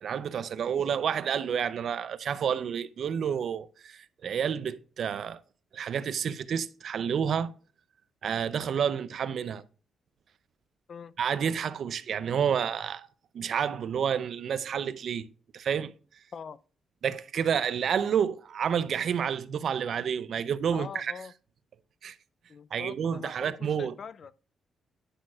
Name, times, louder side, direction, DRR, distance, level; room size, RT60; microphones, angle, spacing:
voice 1, 0.0-5.4 5.7-7.5 8.2-9.6 11.2-13.1 13.3-15.9 17.0-21.1 22.0-22.2 22.7-24.0, right 7 dB, 65° right, 0.5 m, -29 dB
voice 2, 20.7-21.3 22.5-24.3, left 6 dB, 55° left, 0.4 m, -43 dB
9.9 x 6.0 x 2.4 m
cardioid pair, 90°, 0 cm